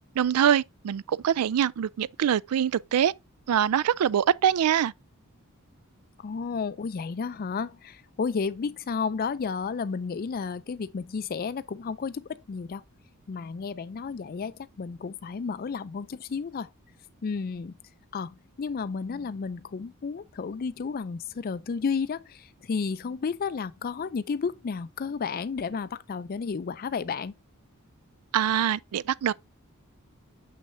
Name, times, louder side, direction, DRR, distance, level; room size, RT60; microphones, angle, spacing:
voice 1, 0.2-3.1 3.5-4.9 28.3-29.3, right 9 dB, 85° right, 0.4 m, -24 dB
voice 2, 6.2-12.8 13.3-16.7 17.2-17.8 18.1-27.3, left 5 dB, 40° left, 0.4 m, -32 dB
6.6 x 6.2 x 2.6 m
head